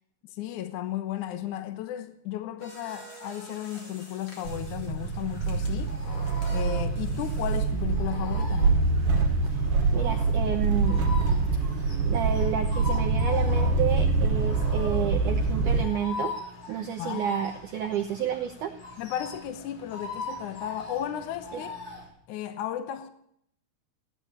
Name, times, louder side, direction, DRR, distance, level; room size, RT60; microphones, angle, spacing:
voice 1, 0.3-5.9 6.5-8.7 17.0-17.3 19.0-21.8 22.3-23.1, left 11 dB, 75° left, 1.8 m, -34 dB
sound 1, 2.6-7.7, equal, 30° left, 3.7 m, -49 dB
sound 2, 4.4-15.8, right 3 dB, 55° right, 3.0 m, -25 dB
sound 3, 5.0-22.1, left 2 dB, 50° left, 7.6 m, -41 dB
voice 2, 9.9-11.0 12.0-16.3 16.7-18.7 21.5-21.6, right 9 dB, 80° right, 1.8 m, -30 dB
16.5 x 9.6 x 8.4 m
omnidirectional pair, 4.8 m